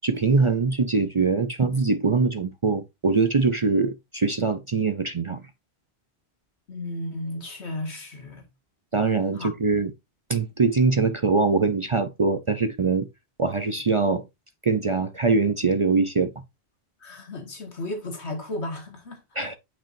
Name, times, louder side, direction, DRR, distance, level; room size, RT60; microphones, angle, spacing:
voice 1, 0.0-5.4 8.9-9.9 10.3-13.1 13.4-14.2 14.6-16.3 19.4-19.5, right 4 dB, 40° right, 0.5 m, -23 dB
voice 2, 6.7-8.5 9.3-9.5 17.0-19.2, left 1 dB, 90° left, 2.2 m, -34 dB
8.9 x 5.2 x 2.6 m
omnidirectional pair, 1.1 m